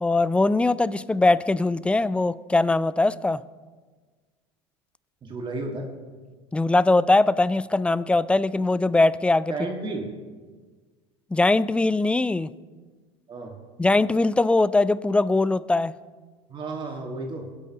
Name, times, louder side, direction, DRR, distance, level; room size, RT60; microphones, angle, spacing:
voice 1, 0.0-3.4 6.5-9.5 11.3-12.5 13.8-15.9, left 2 dB, 10° left, 18 dB, 0.3 m, -21 dB
voice 2, 5.2-5.9 9.5-10.1 13.3-13.6 16.5-17.5, right 2 dB, 35° right, 2 dB, 1.8 m, -32 dB
21.5 x 8.4 x 2.9 m, 1.4 s
hypercardioid pair, 95°, 15 cm